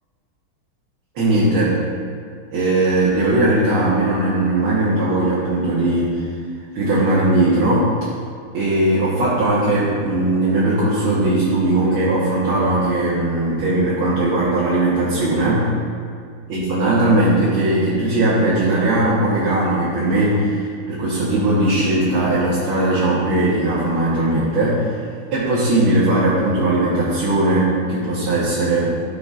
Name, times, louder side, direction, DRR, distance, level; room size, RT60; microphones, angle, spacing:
voice 1, 1.2-1.8 2.5-6.3 6.8-7.9 8.5-15.7 16.5-25.0 25.3-28.9, right 2 dB, 85° right, -8 dB, 2.2 m, -18 dB
13.0 x 5.9 x 2.5 m, 2.1 s
omnidirectional pair, 2.3 m